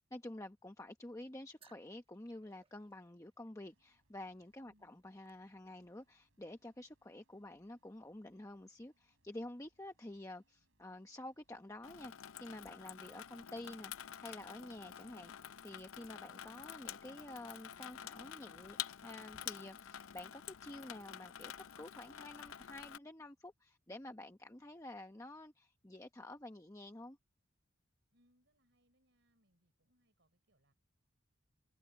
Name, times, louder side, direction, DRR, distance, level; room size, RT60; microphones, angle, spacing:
voice 1, 0.0-18.8 19.0-27.2, left 1 dB, 15° left, 0.9 m, -50 dB
sound 1, 1.6-6.0, right 6 dB, 25° right, 1.3 m, -71 dB
sound 2, 3.6-22.2, right 1 dB, 75° right, 6.1 m, -81 dB
voice 2, 4.6-5.0 28.1-30.7, equal, 60° right, 5.9 m, -76 dB
Water tap faucet / Sink (filling or washing), 11.8-23.0, left 10 dB, 85° left, 0.6 m, -49 dB
head